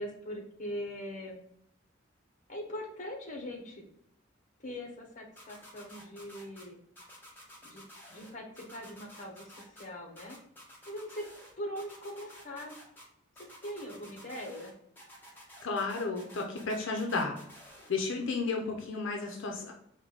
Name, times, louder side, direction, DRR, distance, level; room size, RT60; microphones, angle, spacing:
voice 1, 0.0-1.4 2.5-3.8 4.6-6.8 7.6-7.8 8.1-10.4 10.9-11.2 11.6-12.7 13.6-14.7, equal, 35° left, 1 dB, 0.8 m, -41 dB
sound 1, 5.4-6.6 7.0-8.3 8.6-9.8 10.2-11.5 11.8-13.0 13.4-14.7 15.0-17.9, left 1 dB, 10° left, 0.8 m, -52 dB
voice 2, 15.6-17.3 17.9-19.7, left 3 dB, 75° left, 2 dB, 0.5 m, -32 dB
4.6 x 2.2 x 3.9 m, 0.72 s
head